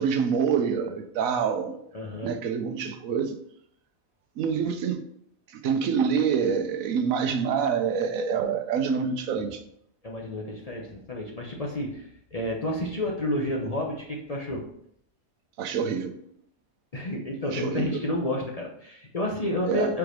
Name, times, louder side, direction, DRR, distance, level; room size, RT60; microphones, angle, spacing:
voice 1, 0.0-1.8 2.2-3.4 4.4-5.0 5.5-9.6 15.6-16.1 17.5-18.0 19.7-19.9, right 6 dB, 75° right, 1.1 m, -26 dB
voice 2, 1.9-2.4 10.0-14.7 16.9-20.0, left 1 dB, 35° left, 0.7 m, -30 dB
4.7 x 4.7 x 5.0 m
omnidirectional pair, 1.5 m